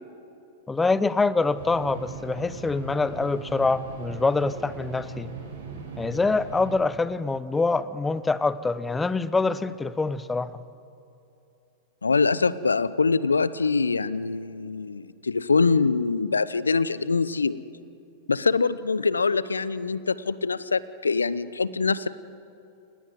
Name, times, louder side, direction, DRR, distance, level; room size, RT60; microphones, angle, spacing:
voice 1, 0.7-5.3 6.0-10.5, left 3 dB, 10° left, 16 dB, 1.0 m, -25 dB
sound 1, 1.6-6.7, right 6 dB, 65° right, 7.6 m, -39 dB
voice 2, 12.0-17.6 18.3-22.1, left 4 dB, 80° left, 18 dB, 0.8 m, -24 dB
28.5 x 19.5 x 9.5 m, 2.7 s
figure-of-eight pair, 95°, 0 cm